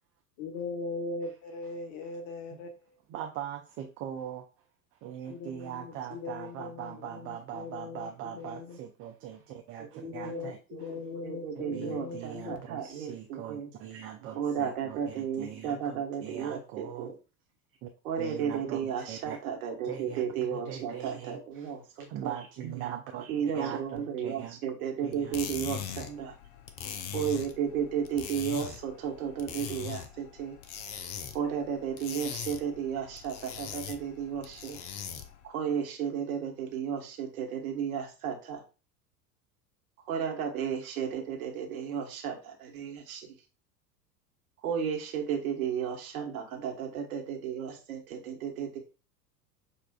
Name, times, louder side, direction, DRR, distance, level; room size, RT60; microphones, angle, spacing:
voice 1, 0.4-2.7 5.3-8.8 10.0-12.6, left 3 dB, 50° left, 5 dB, 1.0 m, -40 dB
voice 2, 3.1-4.4 5.0-11.0 11.6-17.1 17.8-17.9 18.2-19.4 19.8-21.7 22.1-24.6 25.0-25.4, right 10 dB, 30° right, 3 dB, 0.4 m, -41 dB
voice 3, 9.9-10.4 10.7-13.7 14.4-17.1 18.0-22.3 23.3-26.3 27.1-30.6 31.3-34.8 35.4-38.6 40.1-43.3 44.6-48.8, right 8 dB, 60° right, 1 dB, 1.3 m, -33 dB
sound 1, 25.1-35.5, left 8 dB, 35° left, 0.5 m, -41 dB
6.8 x 2.4 x 2.3 m, 0.33 s
figure-of-eight pair, 85°, 48 cm